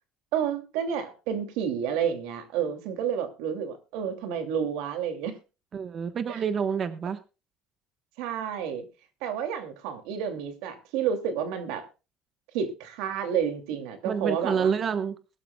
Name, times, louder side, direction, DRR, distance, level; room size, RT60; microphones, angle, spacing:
voice 1, 0.3-5.4 6.3-6.4 8.2-8.8 9.2-11.9 12.5-14.7, right 8 dB, 85° right, 2.6 m, -30 dB
voice 2, 5.7-7.2 14.0-15.1, right 6 dB, 35° right, 1.2 m, -28 dB
21.5 x 12.5 x 2.3 m
cardioid pair, 140°, 0 cm